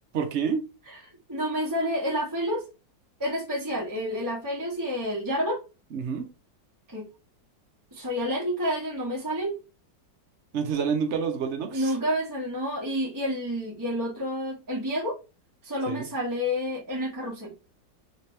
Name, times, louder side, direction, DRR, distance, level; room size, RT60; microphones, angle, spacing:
voice 1, 0.1-0.6 5.9-6.3 10.5-11.9 15.9-16.1, right 6 dB, 55° right, 0.8 m, -28 dB
voice 2, 1.3-2.6 3.2-5.6 6.9-7.1 7.9-9.6 11.7-15.2 15.6-17.5, equal, 15° right, 1.0 m, -29 dB
3.3 x 3.0 x 3.2 m
omnidirectional pair, 2.0 m